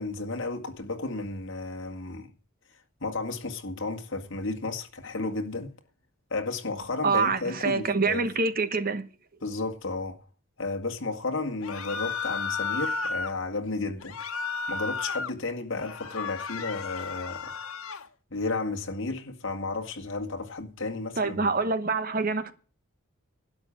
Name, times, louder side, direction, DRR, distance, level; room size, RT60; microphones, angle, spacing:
voice 1, 0.0-2.3 3.0-5.7 6.3-8.3 9.4-10.2 10.6-14.2 14.7-17.6 18.3-21.5, left 3 dB, 60° left, 2.0 m, -33 dB
voice 2, 7.0-9.0 21.2-22.5, right 4 dB, 40° right, 1.1 m, -26 dB
sound 1, 11.6-13.3 14.0-15.3 15.7-18.1, left 4 dB, 85° left, 1.4 m, -33 dB
12.0 x 8.8 x 7.5 m
head